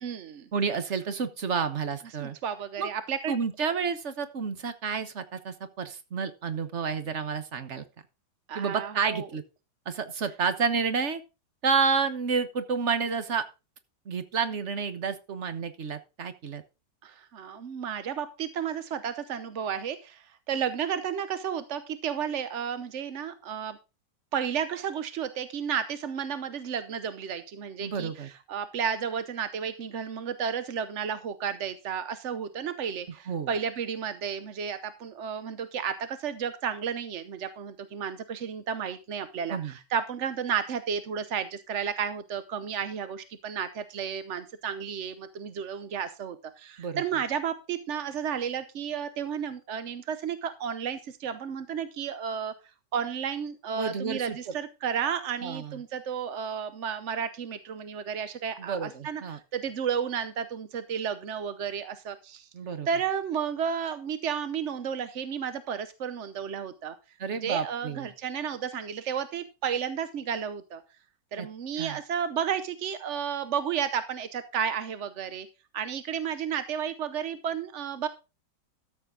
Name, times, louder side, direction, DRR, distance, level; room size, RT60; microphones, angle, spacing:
voice 1, 0.0-0.5 2.2-3.4 8.5-9.3 17.0-23.8 24.3-52.5 52.9-59.2 59.5-62.5 62.9-66.9 67.4-70.8 71.3-75.5 75.7-78.1, right 7 dB, 55° right, 12 dB, 0.8 m, -32 dB
voice 2, 0.5-2.4 2.8-2.9 3.3-7.8 8.5-9.4 9.8-11.2 11.6-13.4 14.0-16.6 27.8-28.3 33.3-33.5 39.5-39.7 46.8-47.0 53.8-54.5 55.4-55.8 58.6-59.4 62.5-62.9 67.2-68.1 71.4-71.5 71.8-72.0, right 5 dB, 40° right, 11 dB, 1.3 m, -30 dB
13.5 x 7.6 x 3.7 m, 0.28 s
omnidirectional pair, 2.1 m